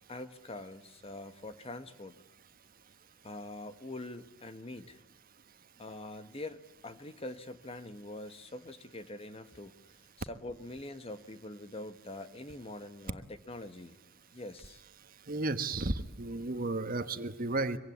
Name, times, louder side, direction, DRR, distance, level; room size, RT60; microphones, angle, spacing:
voice 1, 0.1-2.1 3.2-5.0 5.8-9.7 10.2-14.0 14.3-14.8, left 2 dB, 30° left, 10 dB, 1.5 m, -44 dB
voice 2, 15.3-17.8, right 2 dB, 45° right, 10 dB, 1.5 m, -33 dB
25.5 x 23.5 x 9.5 m, 0.88 s
head